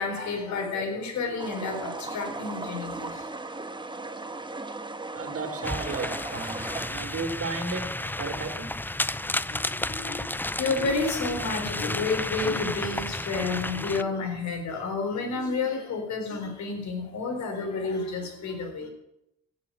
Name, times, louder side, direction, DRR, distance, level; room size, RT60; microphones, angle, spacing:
voice 1, 0.0-3.3 9.3-18.9, left 4 dB, 70° left, 4.1 m, -30 dB
sound 1, 1.4-6.9, right 2 dB, 15° right, 1.5 m, -37 dB
voice 2, 5.1-8.9, right 4 dB, 50° right, 2.8 m, -34 dB
sound 2, 5.6-14.0, left 1 dB, 5° left, 0.6 m, -32 dB
16.0 x 7.6 x 8.7 m
supercardioid pair, 55°, 30 cm